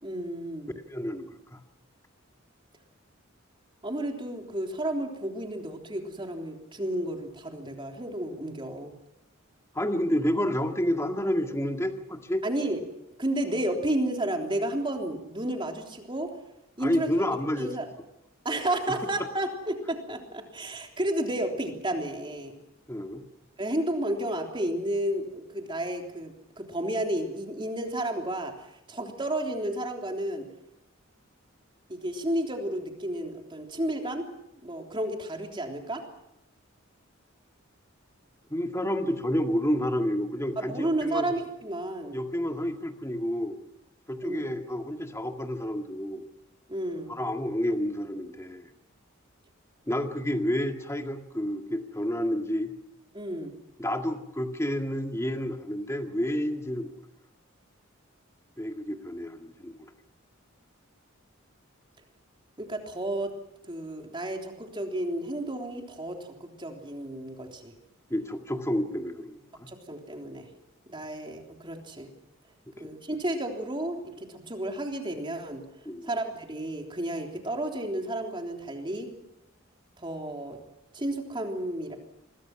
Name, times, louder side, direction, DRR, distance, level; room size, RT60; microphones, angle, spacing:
voice 1, 0.0-0.7 3.8-8.9 12.4-12.8 13.2-16.3 16.8-17.1 17.6-17.9 18.5-22.5 23.6-30.5 31.9-34.3 34.6-36.1 40.6-42.2 44.2-44.5 46.7-47.1 53.1-53.5 62.6-63.3 63.7-67.7 69.7-70.5 70.9-72.1 72.8-75.6 76.0-79.1 80.0-80.6 80.9-82.0, right 1 dB, 25° right, 3 dB, 3.5 m, -32 dB
voice 2, 0.9-1.6 9.7-12.4 16.8-17.7 22.9-23.2 38.5-41.3 42.1-43.6 44.1-46.2 47.1-48.7 49.9-52.7 53.8-56.9 58.6-59.9 68.1-69.7 72.8-72.9 75.9-76.1, equal, 15° left, 5 dB, 2.0 m, -29 dB
28.0 x 22.5 x 6.0 m, 0.85 s
head